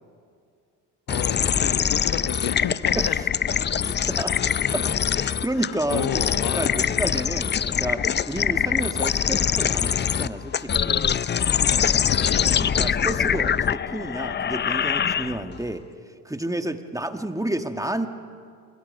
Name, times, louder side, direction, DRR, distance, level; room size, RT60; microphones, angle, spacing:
voice 1, 1.1-3.2 4.3-4.5 5.5-6.6 12.1-12.6, left 9 dB, 60° left, 9 dB, 1.3 m, -31 dB
sound 1, 1.1-15.6, left 8 dB, 25° left, 0.5 m, -24 dB
voice 2, 2.9-3.3 3.8-4.3 4.7-4.9 5.1-6.1 6.5-11.2 12.6-15.8 16.2-18.1, right 1 dB, 10° right, 7 dB, 1.6 m, -30 dB
28.0 x 23.0 x 5.4 m, 2.2 s
hypercardioid pair, 60°, 42 cm